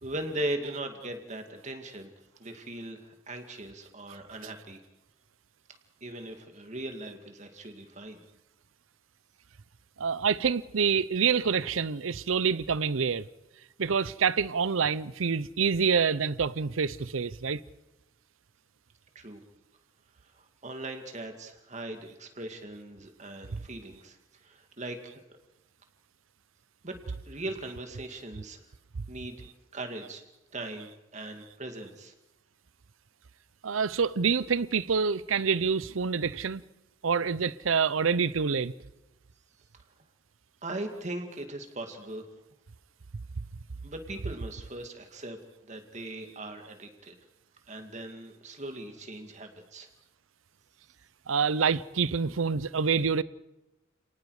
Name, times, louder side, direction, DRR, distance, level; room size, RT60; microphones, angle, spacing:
voice 1, 0.0-2.1 2.4-4.8 6.0-8.2 19.2-19.4 20.3-24.2 24.4-25.2 26.8-27.0 27.3-28.6 29.1-30.2 30.5-32.1 40.6-42.3 43.8-45.4 45.7-47.2 47.7-49.9, right 1 dB, 35° right, 2.2 m, -39 dB
voice 2, 10.0-13.3 13.8-17.6 33.6-36.6 37.0-38.7 51.3-53.2, right 6 dB, 90° right, 0.7 m, -27 dB
29.5 x 19.0 x 4.9 m
head